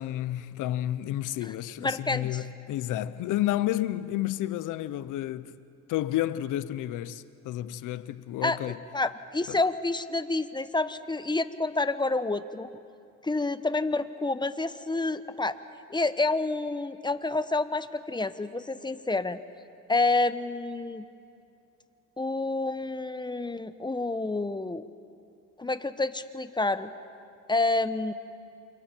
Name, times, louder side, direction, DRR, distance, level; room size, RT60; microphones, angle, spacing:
voice 1, 0.0-5.6 5.9-8.8 9.5-9.6, left 13 dB, 90° left, 0.8 m, -31 dB
voice 2, 1.8-2.4 8.4-8.6 8.9-12.7 13.2-15.6 15.9-19.4 19.9-21.0 22.2-24.8 25.6-26.9 27.5-28.1, left 2 dB, 15° left, 0.9 m, -28 dB
28.5 x 28.0 x 4.5 m
cardioid pair, 90°, 30 cm